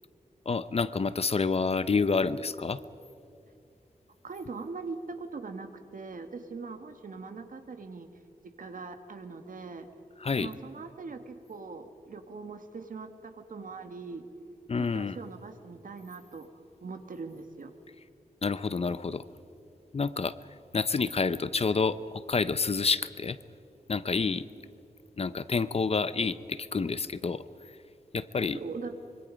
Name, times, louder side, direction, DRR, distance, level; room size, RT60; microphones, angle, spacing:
voice 1, 0.5-2.8 10.2-10.5 14.7-15.2 18.4-19.2 19.9-20.4 20.7-23.4 23.9-24.4 25.2-27.4 28.1-28.6, left 4 dB, 45° left, 14 dB, 0.7 m, -28 dB
voice 2, 4.2-8.1 8.6-9.9 10.4-14.3 14.8-16.5 16.8-17.7 28.5-28.9, right 4 dB, 70° right, 7 dB, 1.9 m, -41 dB
25.5 x 24.0 x 5.3 m, 2.7 s
wide cardioid pair, 130°, 15 cm